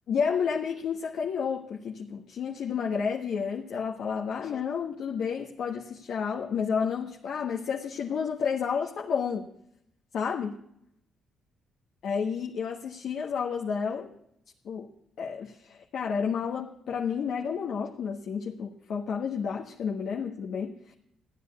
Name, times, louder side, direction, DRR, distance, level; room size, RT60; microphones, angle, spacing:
voice 1, 0.1-9.5 10.1-10.6 12.0-14.1 14.6-14.9 15.2-20.7, left 6 dB, 70° left, -1 dB, 1.4 m, -31 dB
14.5 x 10.0 x 8.5 m, 0.75 s
cardioid pair, 90°, 0 cm